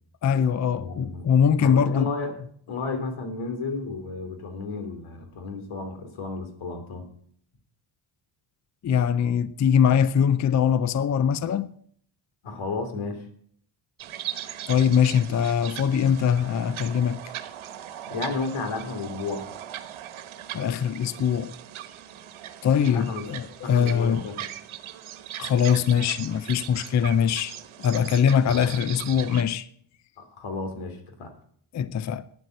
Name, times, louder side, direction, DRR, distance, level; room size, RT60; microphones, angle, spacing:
voice 1, 0.2-2.1 8.8-11.7 14.7-17.2 20.5-21.5 22.6-24.3 25.4-29.7 31.7-32.2, left 8 dB, 40° left, 0.5 m, -22 dB
voice 2, 0.8-2.4 2.7-7.1 12.4-13.3 18.1-19.4 22.9-23.3 23.6-24.4 28.0-28.2 28.5-28.7 30.2-31.3, left 3 dB, 85° left, 3.0 m, -33 dB
sound 1, 14.0-29.4, right 11 dB, 90° right, 1.3 m, -39 dB
11.5 x 9.7 x 7.7 m
wide cardioid pair, 155°, 47 cm